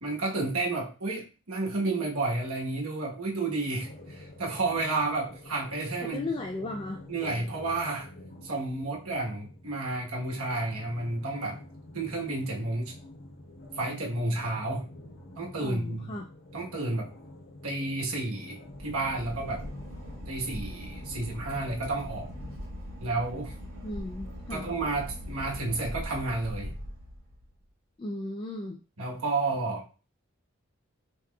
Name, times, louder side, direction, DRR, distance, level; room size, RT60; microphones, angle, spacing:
voice 1, 0.0-6.3 7.1-8.1 8.4-11.6 11.9-12.9 13.8-14.9 15.4-16.1 16.5-17.1 17.6-18.6 18.8-19.6 20.3-22.3 23.0-23.5 24.5-26.7 29.0-29.9, right 2 dB, 85° right, -1 dB, 1.2 m, -31 dB
sound 1, 3.8-22.6, left 1 dB, 45° left, 0.8 m, -47 dB
voice 2, 6.0-7.0 15.6-16.3 23.8-24.7 28.0-28.8, left 2 dB, 25° left, 2 dB, 0.3 m, -36 dB
Boat Water vehicle / Engine, 18.7-27.6, equal, 65° right, 1.7 m, -41 dB
5.6 x 3.0 x 2.3 m, 0.34 s
head